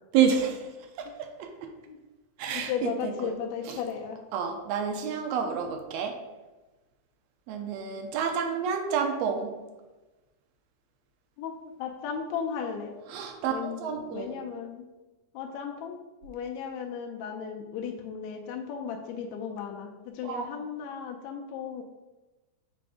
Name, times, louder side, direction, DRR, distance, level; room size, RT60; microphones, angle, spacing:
voice 1, 0.1-0.7 1.0-1.5 2.4-3.1 3.7-3.8 4.3-6.2 7.5-9.6 13.1-14.4 20.2-20.5, right 7 dB, 75° right, 4 dB, 1.6 m, -29 dB
voice 2, 2.5-4.2 11.4-11.5 11.8-12.9 13.5-14.9 15.3-21.8, left 7 dB, 80° left, 1 dB, 1.8 m, -35 dB
7.7 x 2.6 x 4.8 m, 1.1 s
omnidirectional pair, 3.5 m